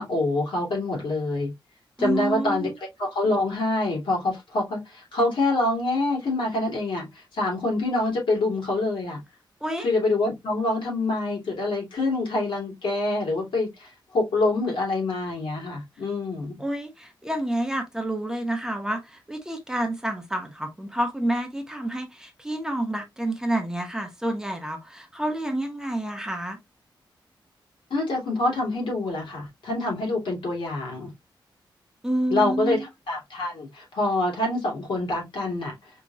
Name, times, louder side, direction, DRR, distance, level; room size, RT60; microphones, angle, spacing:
voice 1, 0.0-1.5 2.0-2.7 3.0-9.2 9.8-16.5 27.9-31.1 32.3-35.8, left 2 dB, 75° left, 2.5 m, -26 dB
voice 2, 2.0-2.7 9.6-9.9 16.6-26.6 32.0-32.9, right 1 dB, 5° right, 0.8 m, -29 dB
5.1 x 2.9 x 2.4 m
wide cardioid pair, 160°, 8 cm